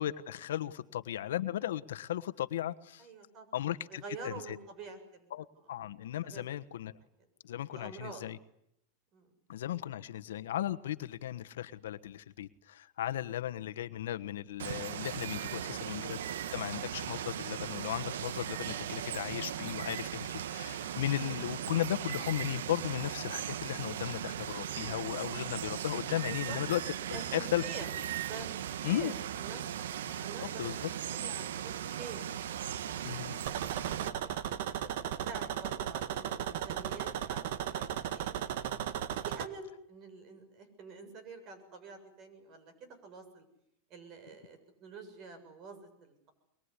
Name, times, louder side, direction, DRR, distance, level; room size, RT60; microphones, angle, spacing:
voice 1, 0.0-3.1 3.5-4.6 5.3-6.9 7.4-8.4 9.5-16.2 16.5-26.8 27.1-27.6 28.8-29.1 30.4-30.8 33.0-33.4 34.2-34.3, left 12 dB, 90° left, 12 dB, 1.3 m, -36 dB
voice 2, 3.0-3.5 3.9-5.3 6.2-6.7 7.7-8.2 9.1-9.3 15.4-15.9 26.3-26.6 27.1-27.9 28.2-29.7 30.0-32.2 32.5-33.2 34.4-34.9 35.2-38.6 39.2-43.4 43.9-46.3, right 4 dB, 40° right, 10 dB, 7.1 m, -47 dB
Water, 14.6-34.1, right 10 dB, 90° right, 1.1 m, -38 dB
sound 1, 33.5-39.5, right 10 dB, 70° right, 1.6 m, -36 dB
23.0 x 22.5 x 9.9 m, 0.77 s
supercardioid pair, 140°, 0 cm